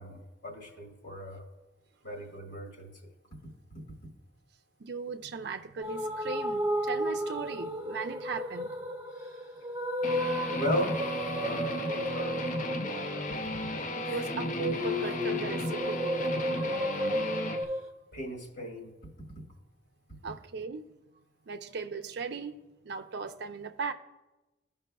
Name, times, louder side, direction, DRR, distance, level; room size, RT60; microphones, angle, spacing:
voice 1, 0.0-1.4 2.0-2.9 10.5-12.4 14.0-14.2 18.1-18.9, left 1 dB, 65° left, 1.5 m, -36 dB
voice 2, 4.8-8.7 13.9-16.1 20.2-20.9 21.5-22.6 22.8-23.9, right 5 dB, 65° right, 0.5 m, -37 dB
sound 1, 5.8-17.9, equal, 15° right, 0.9 m, -33 dB
Guitar, 10.0-17.6, left 1 dB, 45° left, 0.6 m, -35 dB
15.5 x 5.4 x 2.3 m
head